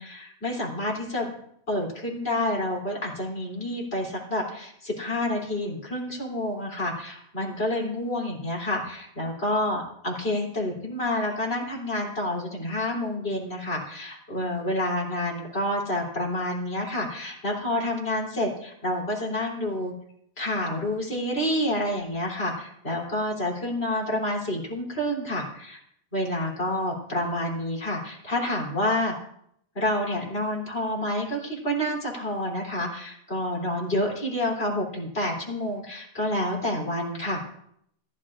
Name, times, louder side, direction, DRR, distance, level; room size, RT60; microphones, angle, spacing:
voice 1, 0.0-1.3 1.7-19.9 20.4-25.8 26.1-29.1 29.8-37.4, left 1 dB, 45° left, -3 dB, 3.7 m, -28 dB
19.5 x 11.0 x 2.5 m, 0.71 s
omnidirectional pair, 1.4 m